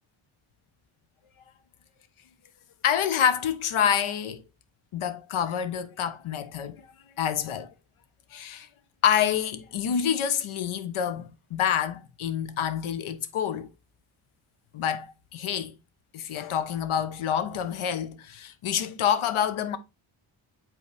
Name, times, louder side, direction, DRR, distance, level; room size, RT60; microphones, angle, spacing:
voice 1, 2.8-4.4 4.9-6.9 7.2-7.7 8.3-8.7 9.0-13.7 14.7-15.7 16.1-19.8, left 8 dB, 75° left, 1.0 m, -27 dB
8.2 x 4.1 x 3.3 m
cardioid pair, 75°, 50 cm